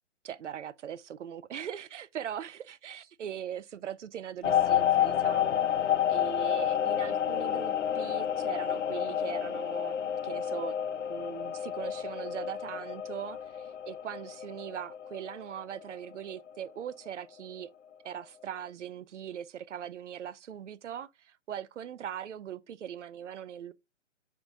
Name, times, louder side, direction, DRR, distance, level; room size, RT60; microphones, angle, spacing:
voice 1, 0.2-5.6 6.1-10.0 10.2-10.8 11.1-17.7 18.0-21.1 21.5-23.7, right 9 dB, 70° right, 0.7 m, -40 dB
sound 1, 4.4-15.8 16.1-16.5, left 10 dB, 70° left, 0.8 m, -30 dB
9.4 x 3.8 x 3.7 m
hypercardioid pair, 140°, 38 cm